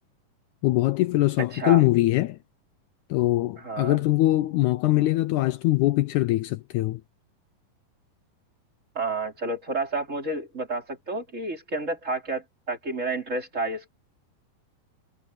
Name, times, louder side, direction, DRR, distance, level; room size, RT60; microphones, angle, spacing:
voice 1, 0.6-2.4 3.1-7.0, left 17 dB, 80° left, 1.7 m, -22 dB
voice 2, 1.4-1.8 3.6-4.0 8.9-13.9, right 2 dB, 20° right, 3.2 m, -30 dB
omnidirectional pair, 4.1 m